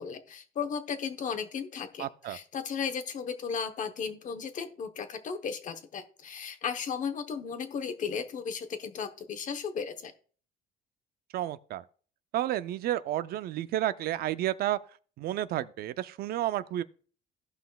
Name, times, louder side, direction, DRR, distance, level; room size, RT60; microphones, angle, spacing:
voice 1, 0.0-10.1, left 6 dB, 50° left, 1.0 m, -35 dB
voice 2, 2.0-2.4 11.3-11.8 12.3-14.8 15.2-16.8, right 13 dB, 65° right, 0.4 m, -31 dB
16.5 x 5.6 x 2.3 m
cardioid pair, 110°, 17 cm